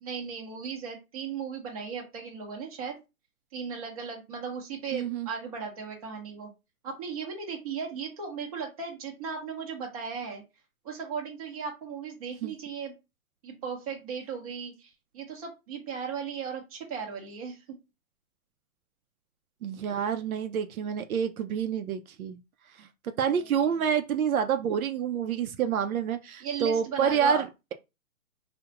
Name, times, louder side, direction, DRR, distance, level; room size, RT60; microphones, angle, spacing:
voice 1, 0.0-3.0 3.5-6.5 6.8-10.4 10.8-12.9 13.4-17.6 23.3-23.5 26.4-27.4, right 6 dB, 25° right, 0.7 m, -36 dB
voice 2, 4.9-5.3 12.4-12.5 19.6-22.4 22.8-27.7, right 7 dB, 75° right, 0.5 m, -28 dB
2.3 x 2.1 x 2.8 m
hypercardioid pair, 155°, 42 cm